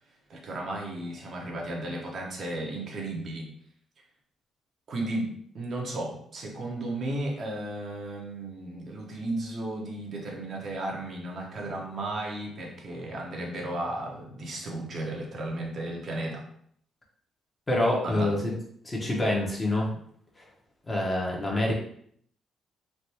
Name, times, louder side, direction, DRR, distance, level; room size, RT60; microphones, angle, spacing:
voice 1, 0.3-3.5 4.9-16.4 18.0-18.3, right 1 dB, 55° right, -1 dB, 0.9 m, -34 dB
voice 2, 17.7-18.5 18.8-19.9 20.4-20.5 20.9-21.7, left 1 dB, 20° left, -2 dB, 0.9 m, -26 dB
3.3 x 2.5 x 2.8 m, 0.64 s
cardioid pair, 90°, 0 cm